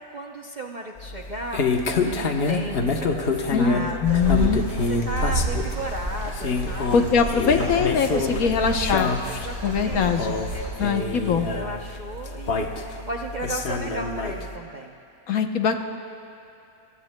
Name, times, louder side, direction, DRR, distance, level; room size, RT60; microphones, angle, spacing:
voice 1, 0.0-4.3 4.8-6.9 7.4-8.0 8.4-8.8 9.3-10.1 10.5-10.9 11.5-15.0, right 1 dB, 45° right, 1 dB, 0.6 m, -35 dB
sound 1, 1.0-14.6, left 3 dB, 45° left, 1.0 m, -28 dB
voice 2, 3.5-4.7 6.9-9.1 9.6-10.3 10.8-11.5 15.3-15.8, left 6 dB, 70° left, 5 dB, 1.3 m, -22 dB
sound 2, 4.0-10.8, right 1 dB, 90° right, 4.6 m, -30 dB
28.0 x 23.5 x 2.2 m, 2.6 s
omnidirectional pair, 1.6 m